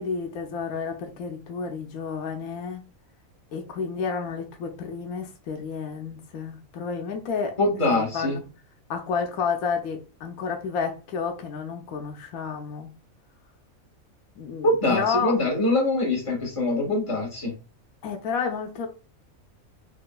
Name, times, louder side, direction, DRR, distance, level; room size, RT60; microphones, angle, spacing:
voice 1, 0.0-2.8 3.5-7.6 8.1-8.4 8.9-12.9 14.4-15.3 18.0-18.9, left 6 dB, 85° left, 1.1 m, -30 dB
voice 2, 7.6-8.4 14.6-17.5, left 2 dB, 25° left, 1.3 m, -23 dB
3.8 x 2.5 x 2.2 m
omnidirectional pair, 1.5 m